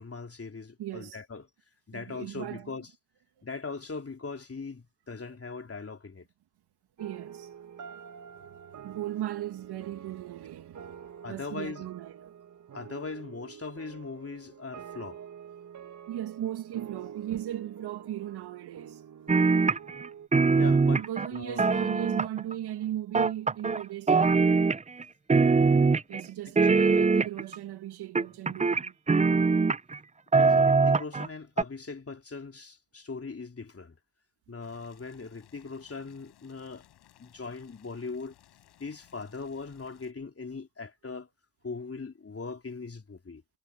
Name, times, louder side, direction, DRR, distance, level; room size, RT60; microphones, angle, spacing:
voice 1, 0.0-1.4 1.9-2.9 3.4-6.3 11.2-11.9 12.7-15.2 20.5-21.0 21.3-21.6 30.4-34.0 34.5-36.8 37.2-38.3 38.8-41.3 41.6-43.4, left 4 dB, 35° left, 3.6 m, -40 dB
voice 2, 0.8-1.2 1.9-2.7 5.3-5.4 7.0-7.5 7.9-8.0 8.3-12.3 16.1-19.0 19.3-19.5 21.0-24.6 26.1-28.9, right 12 dB, 70° right, 2.3 m, -37 dB
sound 1, 7.0-20.3, right 8 dB, 45° right, 1.3 m, -47 dB
sound 2, 19.3-20.1 20.3-22.5 23.1-23.8 24.1-25.0 25.3-26.2 26.6-27.6 28.2-30.0 30.3-31.3 31.6-31.7, right 4 dB, 15° right, 0.7 m, -22 dB
Boiling, 34.6-40.1, left 12 dB, 75° left, 5.4 m, -60 dB
hypercardioid pair, 45°, 41 cm